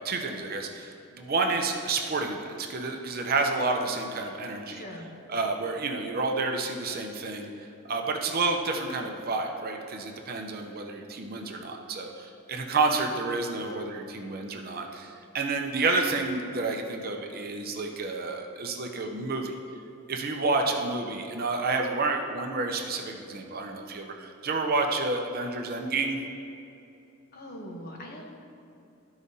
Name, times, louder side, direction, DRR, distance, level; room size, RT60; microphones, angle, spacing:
voice 1, 0.0-4.8 5.3-7.5 7.9-19.5 20.1-26.2, right 3 dB, 45° right, 3 dB, 0.6 m, -30 dB
voice 2, 4.7-5.1 27.3-28.3, equal, 45° left, 0 dB, 1.0 m, -41 dB
13.0 x 4.8 x 2.7 m, 2.7 s
head